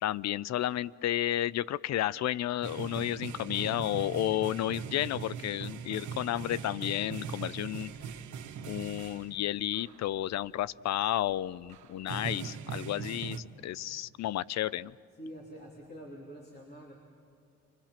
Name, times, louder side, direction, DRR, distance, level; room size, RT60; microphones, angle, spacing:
voice 1, 0.0-7.9 8.7-14.9, left 13 dB, 65° left, 21 dB, 0.5 m, -32 dB
sound 1, 2.6-9.5 9.7-10.1 10.9-11.0 11.4-11.5 11.7-13.4, right 7 dB, 75° right, 1.4 m, -40 dB
voice 2, 15.2-16.9, equal, 35° left, -2 dB, 3.4 m, -46 dB
29.0 x 24.5 x 5.9 m, 2.5 s
cardioid pair, 90°, 30 cm